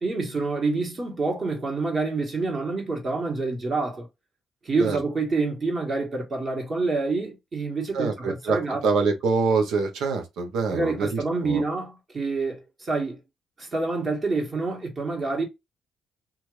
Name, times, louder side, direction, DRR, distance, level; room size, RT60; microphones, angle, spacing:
voice 1, 0.0-4.1 4.6-8.8 10.7-13.2 13.6-15.4, right 3 dB, 40° right, 1.5 m, -27 dB
voice 2, 7.9-11.6, right 4 dB, 85° right, 0.9 m, -25 dB
2.7 x 2.5 x 3.1 m
cardioid pair, 90°, 0 cm